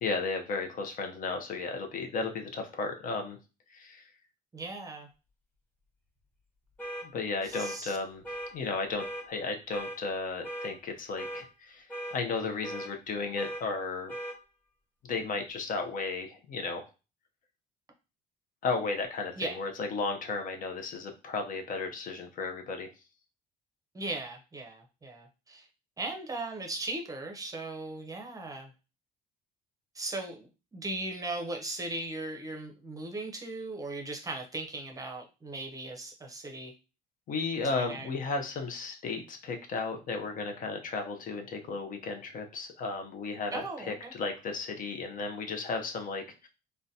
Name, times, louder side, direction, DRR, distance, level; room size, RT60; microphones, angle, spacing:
voice 1, 0.0-3.4 3.7-4.0 7.0-8.2 8.5-11.9 12.1-14.1 15.0-16.8 18.6-22.9 37.3-46.5, left 4 dB, 55° left, 5 dB, 0.6 m, -34 dB
voice 2, 4.5-5.1 7.4-8.0 19.4-19.6 23.9-25.7 26.0-28.7 29.9-36.7 37.6-38.1 43.5-44.1, right 2 dB, 20° right, 3 dB, 0.6 m, -38 dB
sound 1, 6.8-7.1 7.5-7.8 8.2-8.5 9.0-9.2 9.7-10.0 10.4-10.7 11.2-11.4 11.9-12.2 12.6-12.9 13.4-13.6 14.1-14.4, right 1 dB, 10° left, 0.9 m, -38 dB
3.8 x 2.2 x 2.6 m, 0.30 s
cardioid pair, 110°, 17 cm